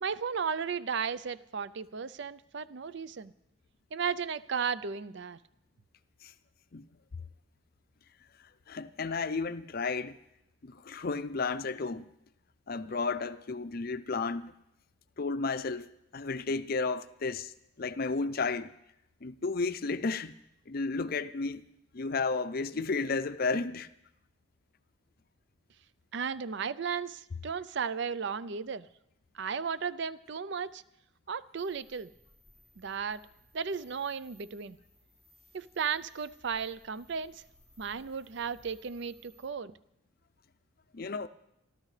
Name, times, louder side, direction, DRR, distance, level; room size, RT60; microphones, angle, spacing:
voice 1, 0.0-3.3 3.9-5.4 26.1-28.9 29.3-30.8 31.3-32.1 32.8-33.2 33.5-34.8 35.5-37.4 37.8-39.7, right 6 dB, 55° right, 0.5 m, -35 dB
voice 2, 8.7-10.2 10.6-12.1 12.7-14.5 15.2-17.5 17.8-18.7 19.2-20.3 20.7-21.6 21.9-23.9 40.9-41.3, left 4 dB, 45° left, 0.5 m, -33 dB
sound 1, 31.5-39.5, equal, 70° right, 4.0 m, -62 dB
27.0 x 12.5 x 3.3 m
head